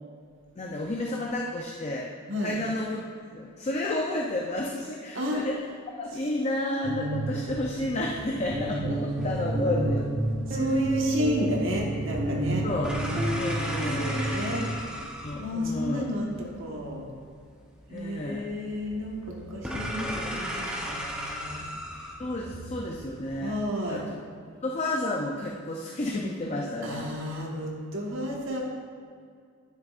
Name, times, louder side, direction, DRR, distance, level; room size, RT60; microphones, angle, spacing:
voice 1, 0.6-2.1 2.4-3.0 3.3-5.6 6.0-10.1 10.6-10.7 12.6-12.9 13.4-14.1 15.2-16.1 17.9-18.5 22.2-23.5 23.9-24.0 24.6-27.1, left 1 dB, 30° left, -1 dB, 0.5 m, -31 dB
voice 2, 5.1-5.5 10.5-14.6 15.4-17.1 17.9-21.7 23.4-24.0 26.8-28.6, left 1 dB, 65° right, -2 dB, 1.3 m, -32 dB
sound 1, 6.8-14.6, right 1 dB, 35° right, 1.2 m, -29 dB
sound 2, 7.5-23.6, equal, 5° right, 0.7 m, -38 dB
11.0 x 6.3 x 2.5 m, 2.2 s
head